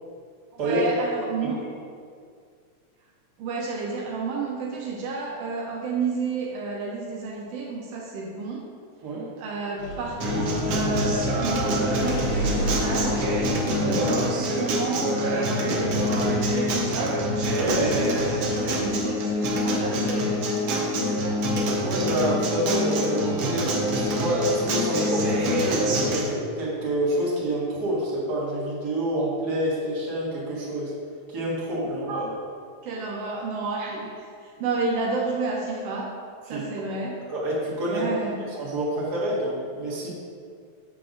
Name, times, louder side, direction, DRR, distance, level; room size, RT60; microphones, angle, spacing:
voice 1, 0.5-1.6 3.4-8.6 9.4-13.3 13.8-17.2 17.7-21.5 32.1-32.3 32.8-36.1 36.5-37.2 37.9-38.4, right 4 dB, 85° right, -2 dB, 1.4 m, -31 dB
sound 1, 9.8-19.3, equal, 60° left, 0.8 m, -32 dB
Acoustic guitar, 10.2-26.2, equal, 65° right, 1.6 m, -25 dB
voice 2, 17.6-17.9 21.8-30.9 31.3-32.3 36.5-36.9 37.2-38.1 38.6-40.1, right 1 dB, 40° right, -6 dB, 1.7 m, -27 dB
7.8 x 6.8 x 2.6 m, 2.2 s
omnidirectional pair, 3.5 m